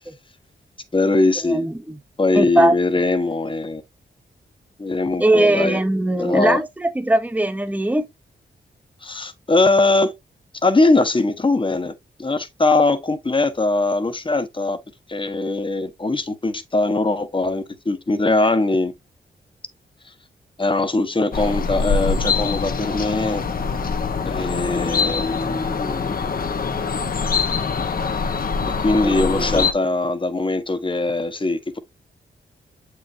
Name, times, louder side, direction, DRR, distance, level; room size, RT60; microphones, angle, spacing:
voice 1, 0.9-1.7 2.2-3.8 4.8-5.8 6.2-6.6 9.0-10.2 10.6-14.8 15.1-18.9 20.6-23.4 24.2-26.1 26.3-26.6 28.8-31.8, left 2 dB, 25° left, 1.2 m, -21 dB
voice 2, 1.4-2.0 2.3-2.7 5.2-8.1 29.0-29.6, right 1 dB, 10° right, 1.0 m, -20 dB
sound 1, 21.3-29.7, left 5 dB, 55° left, 1.1 m, -24 dB
7.5 x 4.7 x 2.7 m
cardioid pair, 70°, 18 cm